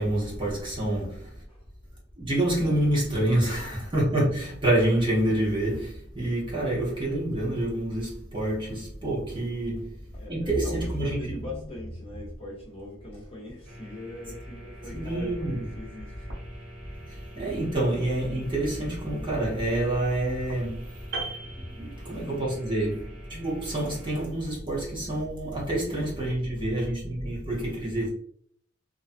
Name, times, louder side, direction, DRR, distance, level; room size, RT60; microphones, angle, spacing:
voice 1, 0.0-1.3 2.2-10.0 10.3-11.3 14.9-15.6 17.1-21.1 21.7-28.1, right 1 dB, 25° right, 0.8 m, -27 dB
voice 2, 10.1-16.3, left 1 dB, 30° left, 1.1 m, -41 dB
sound 1, 13.7-24.3, equal, 90° right, 0.7 m, -46 dB
Piano, 21.1-22.6 22.8-23.1, right 3 dB, 60° right, 1.0 m, -37 dB
2.4 x 2.2 x 2.5 m
head